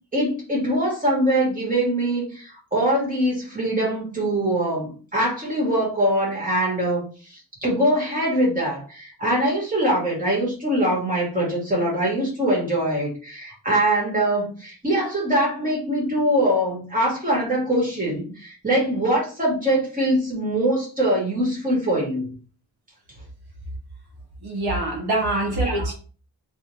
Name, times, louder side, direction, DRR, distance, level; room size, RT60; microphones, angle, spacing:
voice 1, 0.1-22.3 25.4-25.9, right 1 dB, 20° right, -4 dB, 1.9 m, -23 dB
voice 2, 24.4-25.9, right 2 dB, 80° right, -1 dB, 1.2 m, -24 dB
3.5 x 2.9 x 3.2 m, 0.38 s
wide cardioid pair, 135°, 38 cm